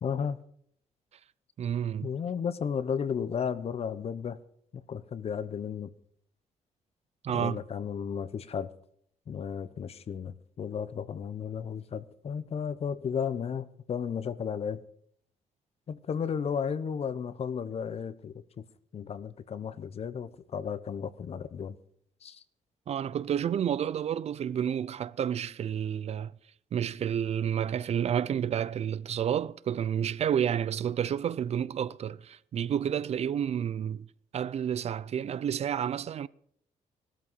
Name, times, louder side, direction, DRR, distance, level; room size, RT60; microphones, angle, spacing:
voice 1, 0.0-0.4 2.0-4.4 4.7-5.9 7.3-8.7 9.3-14.8 15.9-18.6 18.9-21.8 22.2-22.4, left 7 dB, 50° left, 0.9 m, -34 dB
voice 2, 1.6-2.1 7.2-7.6 22.9-26.3 26.7-34.1 34.3-36.3, right 9 dB, 50° right, 0.5 m, -30 dB
17.5 x 13.0 x 5.5 m
cardioid pair, 105°, 13 cm